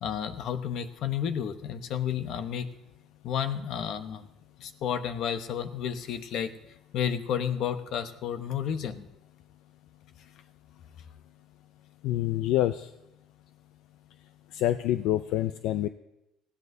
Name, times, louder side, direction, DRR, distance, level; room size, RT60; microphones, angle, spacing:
voice 1, 0.0-2.7 3.2-4.3 4.6-6.5 6.9-9.1, left 8 dB, 60° left, 9 dB, 1.0 m, -31 dB
voice 2, 12.0-12.9 14.5-15.9, left 13 dB, 80° left, 11 dB, 0.4 m, -26 dB
19.0 x 16.0 x 2.7 m, 0.90 s
cardioid pair, 135°, 0 cm